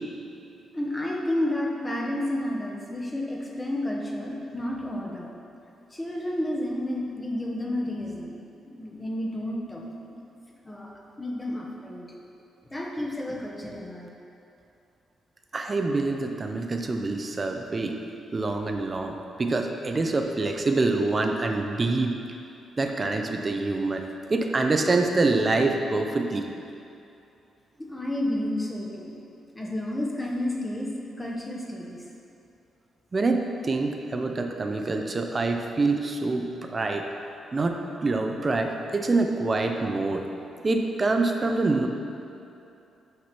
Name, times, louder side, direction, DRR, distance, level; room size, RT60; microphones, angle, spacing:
voice 1, 0.7-5.3 5.9-8.4 8.7-9.9 10.6-10.9 11.2-12.1 12.7-14.1 27.8-29.1 29.5-32.0, left 1 dB, 10° left, -2 dB, 0.9 m, -31 dB
voice 2, 15.5-18.0 18.3-22.2 22.8-24.0 24.3-26.5 33.1-37.1 37.5-40.2 40.6-41.9, right 3 dB, 25° right, 4 dB, 0.5 m, -26 dB
6.2 x 5.8 x 5.9 m, 2.7 s
cardioid pair, 165°, 0 cm